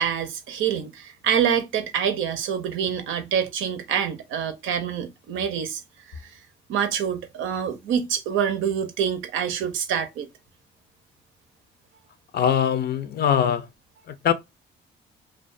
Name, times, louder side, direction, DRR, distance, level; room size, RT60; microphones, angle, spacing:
voice 1, 0.0-5.8 6.1-6.4 6.7-10.3, right 8 dB, 80° right, 0.6 m, -26 dB
voice 2, 12.3-13.7 14.0-14.3, left 9 dB, 55° left, 0.5 m, -22 dB
2.3 x 2.2 x 2.4 m
cardioid pair, 90°, 20 cm